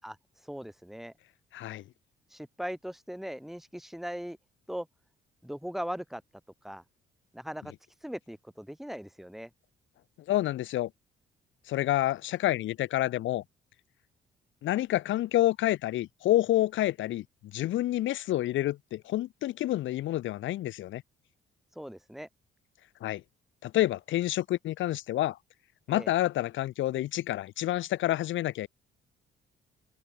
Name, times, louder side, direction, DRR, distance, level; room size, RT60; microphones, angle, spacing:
voice 1, 0.4-1.1 2.3-4.4 4.7-4.9 5.4-6.2 6.6-6.8 7.3-7.7 8.0-9.5 21.7-22.3 25.9-26.1, equal, ahead, 6.2 m, -39 dB
voice 2, 1.5-1.8 10.3-10.9 11.7-13.4 14.6-17.2 17.5-21.0 23.0-23.2 23.6-25.4 25.9-28.7, left 14 dB, 75° left, 0.7 m, -28 dB
open air
cardioid pair, 90°, 20 cm